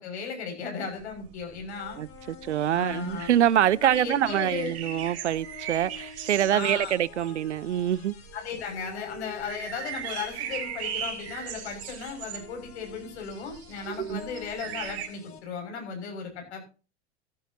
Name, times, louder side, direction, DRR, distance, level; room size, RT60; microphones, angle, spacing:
voice 1, 0.0-2.0 2.7-3.3 3.8-4.7 6.5-7.0 8.3-16.6, left 6 dB, 70° left, 6.4 m, -36 dB
sound 1, 1.0-8.3 8.6-8.9 9.1-15.1, right 9 dB, 45° right, 4.5 m, -38 dB
sound 2, 1.7-15.4, left 6 dB, 40° left, 3.2 m, -48 dB
voice 2, 2.0-8.1 14.0-14.2, right 11 dB, 80° right, 0.6 m, -25 dB
14.5 x 13.0 x 2.8 m
figure-of-eight pair, 85°, 34 cm